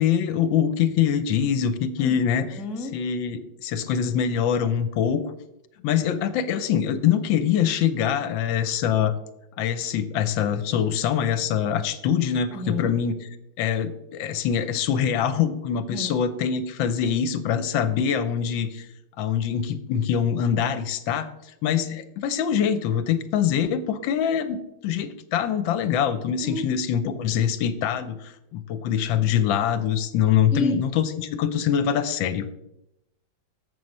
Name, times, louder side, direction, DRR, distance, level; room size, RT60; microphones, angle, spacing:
voice 1, 0.0-2.5 2.9-5.2 5.8-9.1 9.6-13.2 13.6-18.9 19.2-21.3 21.6-24.6 24.8-32.5, left 8 dB, 85° left, 11 dB, 1.4 m, -24 dB
voice 2, 2.0-2.9 12.5-12.9 15.9-16.2 26.4-26.7 30.5-30.8, left 1 dB, ahead, 2 dB, 0.5 m, -31 dB
7.4 x 6.3 x 5.3 m, 0.86 s
omnidirectional pair, 2.1 m